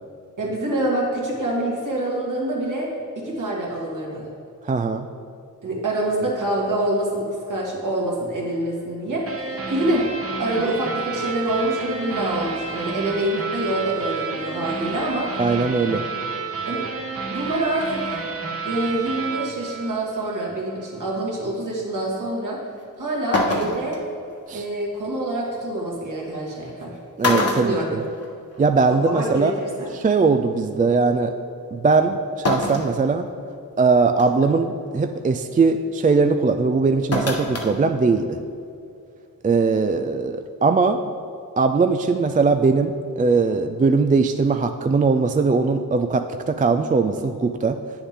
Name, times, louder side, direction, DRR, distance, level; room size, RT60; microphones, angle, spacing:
voice 1, 0.4-2.9 3.2-4.3 5.6-10.1 10.4-15.4 16.7-16.9 17.3-18.2 18.6-22.6 23.0-24.0 24.5-26.9 27.2-27.9 28.9-29.9, right 1 dB, 60° right, -3 dB, 2.1 m, -26 dB
voice 2, 4.6-5.1 15.4-16.0 24.5-24.6 27.2-28.0 28.6-29.5 29.9-31.3 31.7-33.3 33.8-38.4 39.4-41.0 41.6-47.8, right 4 dB, 25° right, 7 dB, 0.3 m, -20 dB
sound 1, 9.3-20.5, right 4 dB, 40° right, 1.0 m, -31 dB
sound 2, 22.8-22.9 23.3-24.0 25.6-25.7 26.7-26.8 27.2-28.6 28.9-29.0 30.3-30.4 32.5-33.0 33.5-33.6 34.2-34.5 37.1-37.7 38.1-38.2, left 2 dB, 45° left, 1.2 m, -24 dB
9.1 x 7.0 x 3.7 m, 2.6 s
cardioid pair, 70°, 35 cm